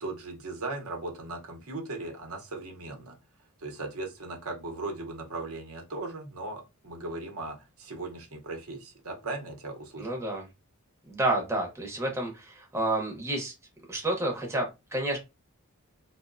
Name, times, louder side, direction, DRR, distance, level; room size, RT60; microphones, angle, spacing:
voice 1, 0.0-3.2 3.6-10.2, right 2 dB, 70° right, 0.7 m, -38 dB
voice 2, 10.0-10.4 11.1-13.5 13.9-15.2, right 1 dB, 10° right, 0.6 m, -30 dB
2.9 x 2.0 x 2.4 m
head